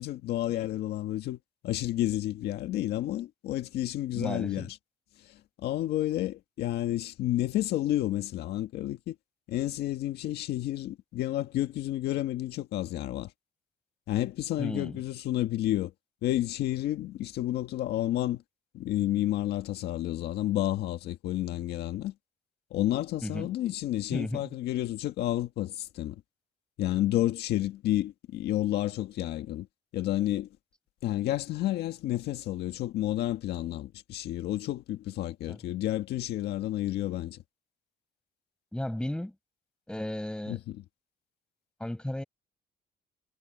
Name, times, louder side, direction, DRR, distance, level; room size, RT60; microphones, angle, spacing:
voice 1, 0.0-1.4 1.6-4.8 5.2-9.2 9.5-13.3 14.1-15.9 16.2-18.4 18.7-22.1 22.7-26.2 26.8-29.7 29.9-30.5 31.0-37.4 40.5-40.8, left 14 dB, 75° left, 1.8 m, -30 dB
voice 2, 4.1-4.7 14.6-15.0 23.2-23.5 24.1-24.5 35.5-35.6 38.7-39.3 39.9-40.6 41.8-42.2, left 1 dB, 5° left, 5.5 m, -34 dB
cardioid pair, 110°, 17 cm